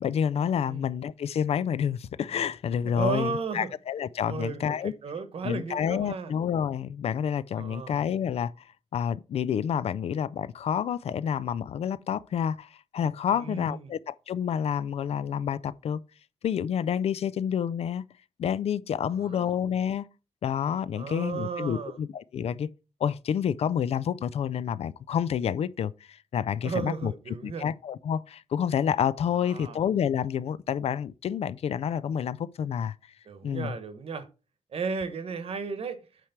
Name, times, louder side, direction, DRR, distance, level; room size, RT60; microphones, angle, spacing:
voice 1, 0.0-4.9 5.4-8.5 8.9-16.0 16.4-18.0 18.4-20.1 20.4-22.7 23.0-27.1 27.4-32.9 33.4-33.7, left 8 dB, 60° left, 0.4 m, -29 dB
voice 2, 2.8-3.7 4.3-6.3 7.5-7.9 13.3-13.9 19.1-19.5 20.9-22.0 26.6-27.7 29.3-29.8 33.3-34.3 34.7-36.0, right 4 dB, 55° right, 1.1 m, -34 dB
9.0 x 3.3 x 5.8 m
wide cardioid pair, 125°, 12 cm